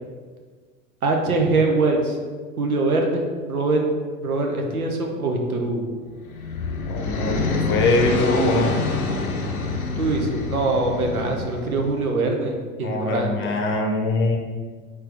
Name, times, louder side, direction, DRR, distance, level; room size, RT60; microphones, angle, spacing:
voice 1, 1.0-2.2 2.6-3.8 4.2-5.8 10.0-13.4, right 2 dB, 90° right, 2 dB, 0.7 m, -23 dB
sound 1, 6.1-12.1, left 3 dB, 85° left, 0.7 m, -27 dB
voice 2, 6.9-8.8 12.8-14.4, left 2 dB, 30° left, 2 dB, 0.7 m, -22 dB
4.3 x 3.4 x 3.2 m, 1.5 s
figure-of-eight pair, 80°, 42 cm